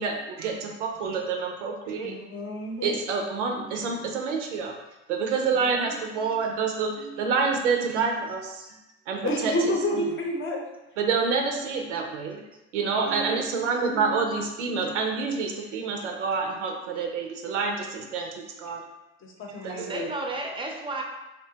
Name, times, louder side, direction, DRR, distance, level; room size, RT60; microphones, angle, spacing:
voice 1, 0.0-2.2 2.6-4.8 5.1-8.8 9.1-10.0 11.0-12.4 12.7-18.8 19.5-20.0, right 5 dB, 90° right, 2 dB, 0.5 m, -28 dB
voice 2, 2.0-2.9 9.2-10.6 19.2-20.1, equal, 35° left, 0 dB, 0.7 m, -29 dB
voice 3, 5.5-6.0 8.6-8.7 12.9-13.5 19.7-21.0, right 2 dB, 15° right, 1 dB, 0.5 m, -35 dB
2.7 x 2.2 x 2.7 m, 0.98 s
hypercardioid pair, 75°, 35 cm